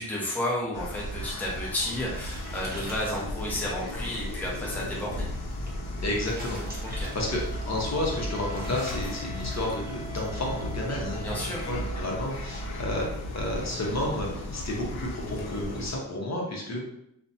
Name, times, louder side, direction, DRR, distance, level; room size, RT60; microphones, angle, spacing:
voice 1, 0.0-5.3 6.8-7.1 11.2-11.7, left 1 dB, 5° left, -4 dB, 0.6 m, -32 dB
sound 1, 0.7-16.0, left 1 dB, 80° left, 0.6 m, -35 dB
sound 2, 1.8-10.3, equal, 25° right, 0.9 m, -46 dB
Wind instrument woodwind instrument, 4.9-12.9, right 3 dB, 80° right, 0.6 m, -47 dB
voice 2, 6.0-11.4 11.6-13.1 13.3-16.8, left 1 dB, 45° left, -2 dB, 0.7 m, -31 dB
2.5 x 2.1 x 2.6 m, 0.77 s
cardioid pair, 90°, 38 cm